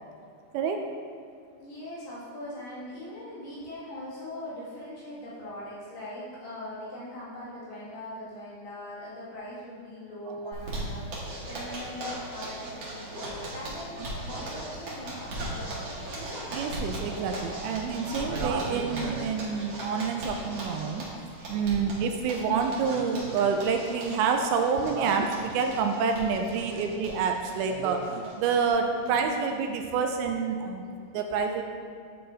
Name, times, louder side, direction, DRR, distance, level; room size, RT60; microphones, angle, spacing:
voice 1, 1.6-16.0 28.8-29.1, left 1 dB, 85° left, -9 dB, 4.4 m, -41 dB
Zipper (clothing), 10.5-28.7 29.0-29.1 29.4-29.5 29.8-30.3, right 1 dB, 50° right, 1.5 m, -38 dB
voice 2, 16.5-21.1 21.5-31.6, right 5 dB, 80° right, 4 dB, 2.3 m, -28 dB
10.0 x 7.4 x 2.8 m, 2.4 s
omnidirectional pair, 4.6 m